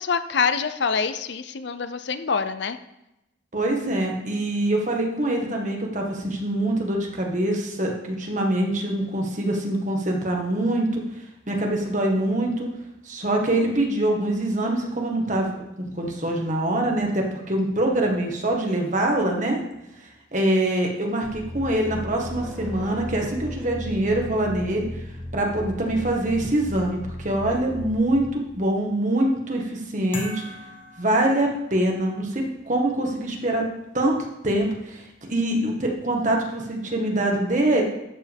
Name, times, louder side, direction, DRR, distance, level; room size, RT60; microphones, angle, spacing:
voice 1, 0.0-2.8, left 5 dB, 65° left, 11 dB, 0.5 m, -25 dB
voice 2, 3.5-11.0 11.5-12.7 13.0-19.6 20.3-24.9 25.3-30.4 31.0-33.7 33.9-34.1 34.4-35.0 35.3-37.8, right 1 dB, 40° right, 0 dB, 1.6 m, -24 dB
sound 1, 21.2-28.7, left 1 dB, 5° right, 0.9 m, -36 dB
sound 2, 30.1-32.0, left 2 dB, 30° left, 1.5 m, -39 dB
12.5 x 7.8 x 3.5 m, 0.88 s
head